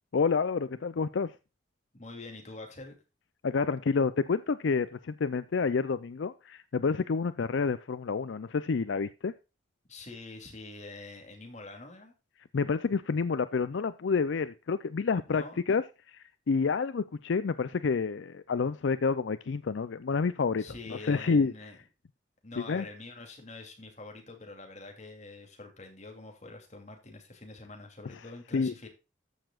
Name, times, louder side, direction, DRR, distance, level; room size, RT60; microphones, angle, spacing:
voice 1, 0.1-1.3 3.4-9.3 12.5-21.5 22.7-22.8 28.5-28.7, left 5 dB, 70° left, 14 dB, 0.4 m, -29 dB
voice 2, 1.9-2.9 9.9-12.1 15.3-15.6 20.6-21.8 22.4-28.9, left 2 dB, 35° left, 3 dB, 2.8 m, -45 dB
13.5 x 6.9 x 2.4 m, 0.28 s
head